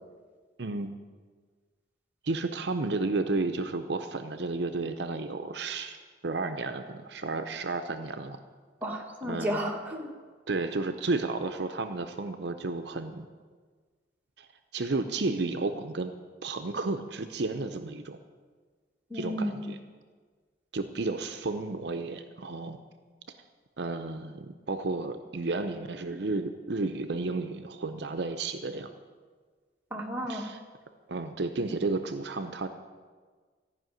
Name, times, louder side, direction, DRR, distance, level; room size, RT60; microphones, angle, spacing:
voice 1, 0.6-0.9 2.2-6.0 6.2-8.4 9.2-9.6 10.5-13.3 14.4-14.5 14.7-16.1 16.4-18.2 19.1-19.8 20.7-22.8 23.8-28.9 30.3-30.6 31.1-32.7, right 3 dB, 60° right, 7 dB, 0.6 m, -32 dB
voice 2, 8.8-10.1 19.1-19.7 29.9-30.5, equal, 10° right, -1 dB, 1.5 m, -33 dB
14.0 x 5.7 x 9.2 m, 1.5 s
head